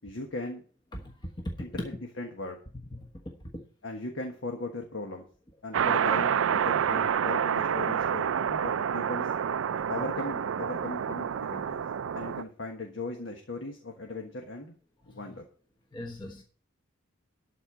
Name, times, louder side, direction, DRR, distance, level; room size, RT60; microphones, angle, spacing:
voice 1, 0.0-0.6 1.6-2.6 3.8-5.2 5.6-9.3 9.9-11.8 12.1-14.7 15.1-15.4, left 2 dB, 65° left, 2 dB, 1.4 m, -38 dB
voice 2, 0.9-1.9 2.9-3.0 3.2-3.6 15.9-16.4, left 1 dB, 20° left, 1 dB, 1.3 m, -38 dB
sound 1, 5.7-12.4, right 8 dB, 75° right, 0.4 m, -28 dB
12.5 x 4.4 x 8.3 m, 0.42 s
head